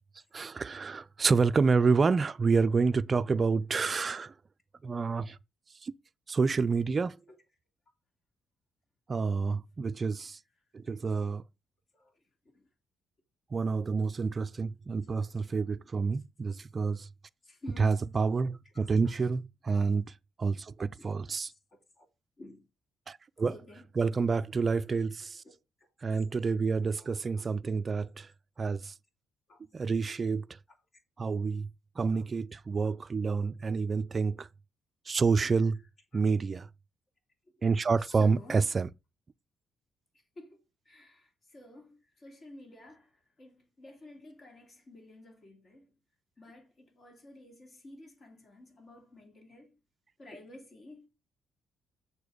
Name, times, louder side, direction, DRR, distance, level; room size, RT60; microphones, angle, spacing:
voice 1, 0.3-4.3 4.8-5.4 5.8-5.9 6.3-7.2 9.1-10.4 10.7-11.4 13.5-17.1 17.8-20.0 20.4-21.5 23.1-23.5 24.0-25.4 26.0-28.3 28.6-28.9 29.7-30.4 31.2-31.7 32.0-34.5 35.1-35.8 36.1-36.7 37.6-38.9, right 4 dB, 35° right, 0.4 m, -28 dB
voice 2, 10.9-11.3 11.9-12.1 12.4-12.7 14.2-14.4 15.0-15.5 16.1-16.6 17.4-18.2 18.6-19.3 20.9-22.1 22.4-22.7 23.5-23.9 24.3-24.4 25.4-25.5 26.9-27.4 29.5-29.6 30.7-30.8 32.1-32.3 32.8-33.0 35.5-36.2 37.7-38.6 40.4-43.1 43.4-45.9 46.4-49.8 50.2-51.1, left 1 dB, 40° left, 2.7 m, -53 dB
6.8 x 4.4 x 5.0 m
cardioid pair, 90°, 0 cm